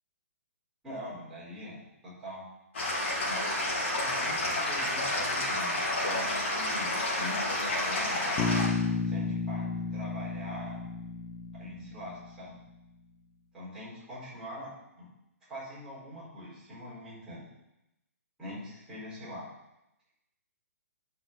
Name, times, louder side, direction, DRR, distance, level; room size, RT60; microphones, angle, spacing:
voice 1, 0.8-2.4 3.3-8.5 9.1-10.8 11.5-12.6 13.5-15.1 15.4-17.5 18.4-19.5, equal, 5° right, -11 dB, 4.4 m, -43 dB
sound 1, 2.7-8.7, left 1 dB, 50° left, 3.6 m, -30 dB
Bass guitar, 8.4-12.4, left 4 dB, 15° left, 0.7 m, -32 dB
10.5 x 6.0 x 5.9 m, 0.90 s
hypercardioid pair, 175°, 8 cm